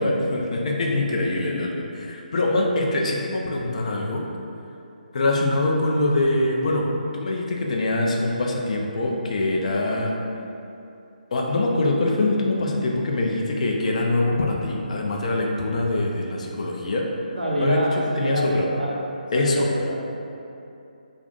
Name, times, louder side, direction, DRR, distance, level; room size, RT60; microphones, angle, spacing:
voice 1, 0.0-4.3 5.1-6.8 7.1-10.1 11.3-17.0 17.6-18.7 19.3-19.7, left 2 dB, 50° left, 0 dB, 0.4 m, -24 dB
voice 2, 17.4-20.0, equal, 90° right, -5 dB, 0.7 m, -26 dB
2.4 x 2.4 x 3.8 m, 2.7 s
figure-of-eight pair, 145°, 5 cm